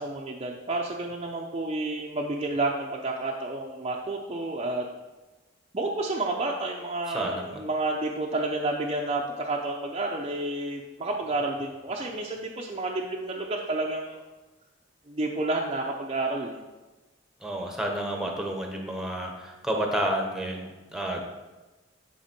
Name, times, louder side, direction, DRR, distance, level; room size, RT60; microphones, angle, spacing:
voice 1, 0.0-4.9 5.7-14.2 15.1-16.6, right 2 dB, 30° right, -1 dB, 0.7 m, -30 dB
voice 2, 7.1-7.6 17.4-21.2, right 1 dB, 5° right, 1 dB, 1.0 m, -30 dB
10.5 x 4.2 x 4.4 m, 1.1 s
head